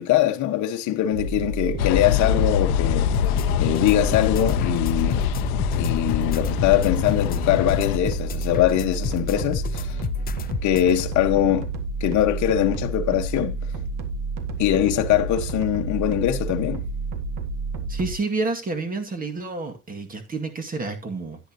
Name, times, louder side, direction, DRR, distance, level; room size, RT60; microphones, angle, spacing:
voice 1, 0.0-3.1 3.5-5.3 5.8-9.9 10.6-11.7 12.0-13.6 14.6-16.8, left 12 dB, 40° left, 1.4 m, -22 dB
sound 1, 1.1-18.1, right 3 dB, 45° right, 2.1 m, -30 dB
sound 2, 1.8-8.0, left 12 dB, 70° left, 1.0 m, -25 dB
sound 3, 3.1-10.9, left 10 dB, 20° left, 0.6 m, -32 dB
voice 2, 17.9-21.4, right 3 dB, 20° right, 2.1 m, -29 dB
11.0 x 10.0 x 2.9 m
supercardioid pair, 130°, 46 cm